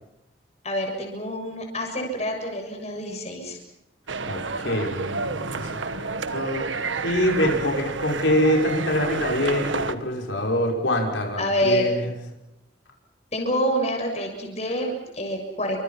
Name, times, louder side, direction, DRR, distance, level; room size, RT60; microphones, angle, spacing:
voice 1, 0.6-3.6 11.4-11.9 13.3-15.8, equal, 35° left, 3 dB, 6.9 m, -27 dB
sound 1, 4.1-10.0, right 4 dB, 90° right, 1.4 m, -30 dB
voice 2, 4.2-12.1, left 1 dB, 90° left, 0 dB, 5.8 m, -25 dB
29.5 x 26.5 x 5.9 m, 0.89 s
head